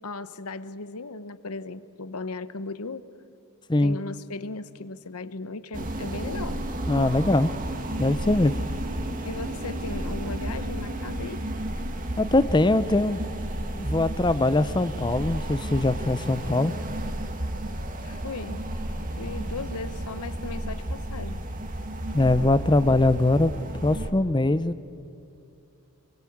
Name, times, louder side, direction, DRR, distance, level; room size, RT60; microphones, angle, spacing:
voice 1, 0.0-3.0 3.8-6.6 9.2-11.5 18.0-18.6 19.2-21.4, left 3 dB, 85° left, 14 dB, 0.9 m, -37 dB
sound 1, 5.7-24.1, right 1 dB, 40° right, 1.8 m, -32 dB
voice 2, 6.9-7.5 8.0-8.6 12.2-13.2 13.7-16.7 22.1-23.5 23.8-24.8, left 2 dB, 20° left, 14 dB, 0.6 m, -22 dB
24.5 x 22.0 x 8.6 m, 2.8 s
head